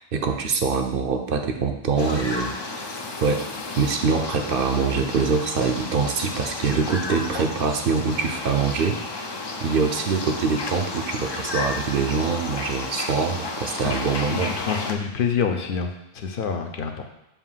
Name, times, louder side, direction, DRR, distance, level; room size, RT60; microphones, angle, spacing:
voice 1, 0.0-9.0 9.6-14.5, right 5 dB, 65° right, 5 dB, 0.7 m, -24 dB
sound 1, 2.0-14.9, left 3 dB, 35° left, 0.4 m, -32 dB
voice 2, 14.3-15.9 16.1-17.1, left 6 dB, 60° left, 5 dB, 0.8 m, -26 dB
7.1 x 2.5 x 5.6 m, 0.93 s
omnidirectional pair, 1.1 m